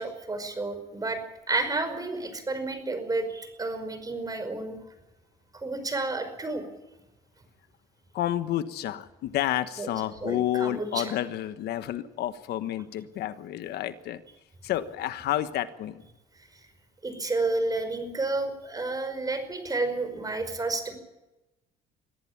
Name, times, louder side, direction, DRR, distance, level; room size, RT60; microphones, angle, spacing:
voice 1, 0.0-4.8 5.5-6.6 9.8-9.9 10.2-11.1 17.0-21.0, right 3 dB, 20° right, 9 dB, 5.3 m, -31 dB
voice 2, 8.1-14.2 14.6-16.0, left 12 dB, 75° left, 12 dB, 1.3 m, -30 dB
23.5 x 15.0 x 8.7 m, 0.98 s
cardioid pair, 110°, 17 cm